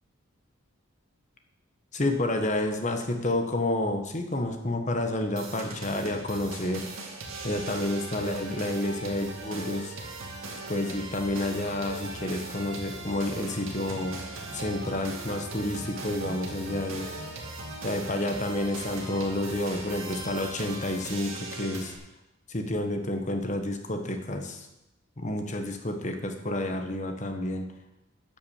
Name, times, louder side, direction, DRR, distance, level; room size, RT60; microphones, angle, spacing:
voice 1, 1.9-6.8 7.4-9.9 10.7-14.2 14.5-17.1 17.8-21.9 22.5-24.7 25.2-27.7, left 1 dB, 35° left, 5 dB, 1.3 m, -30 dB
sound 1, 5.4-22.0, right 2 dB, 70° right, 2.1 m, -39 dB
11.5 x 6.1 x 7.2 m, 0.92 s
head